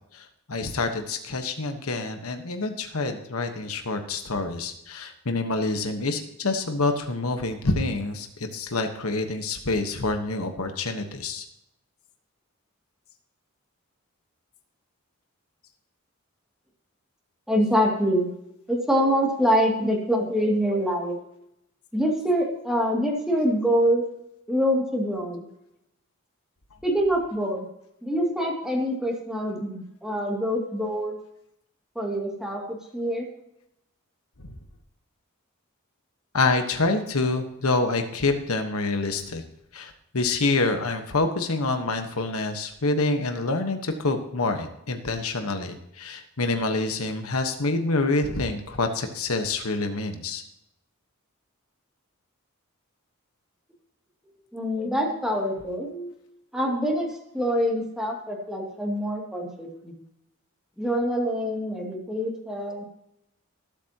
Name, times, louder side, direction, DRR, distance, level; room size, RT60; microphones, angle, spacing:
voice 1, 0.1-11.4 36.3-39.4 39.7-50.4, left 3 dB, 85° left, 6 dB, 1.3 m, -27 dB
voice 2, 17.5-18.3 18.7-21.2 21.9-24.0 24.5-25.5 26.8-27.7 28.0-31.2 32.0-33.3 54.5-56.1 56.5-57.1 57.3-59.9 60.8-62.8, equal, 5° right, -1 dB, 2.5 m, -25 dB
19.0 x 8.5 x 2.9 m, 0.81 s
head